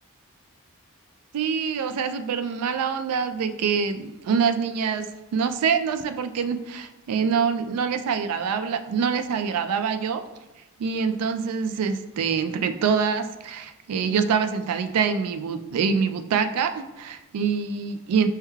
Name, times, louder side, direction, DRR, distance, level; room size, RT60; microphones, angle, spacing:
voice 1, 1.3-10.2 10.8-18.3, right 6 dB, 80° right, 10 dB, 0.3 m, -25 dB
4.5 x 3.1 x 2.3 m, 1.0 s
head